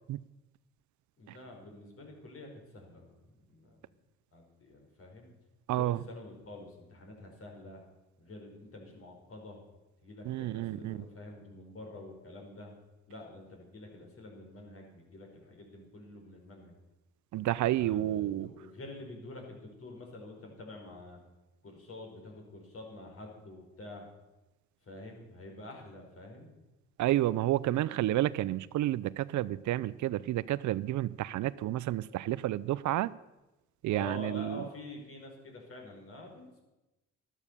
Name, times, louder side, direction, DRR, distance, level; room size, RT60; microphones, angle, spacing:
voice 1, 1.2-3.8 4.3-5.3 5.7-7.8 8.2-9.6 10.0-12.7 13.1-16.8 17.7-21.2 21.6-24.0 24.8-26.5 33.9-36.6, left 2 dB, 50° left, 1 dB, 5.2 m, -47 dB
voice 2, 5.7-6.0 10.3-11.0 17.3-18.5 27.0-33.1 33.8-34.6, right 14 dB, 75° right, 19 dB, 0.6 m, -30 dB
12.5 x 12.0 x 6.8 m, 1.0 s
cardioid pair, 90°, 30 cm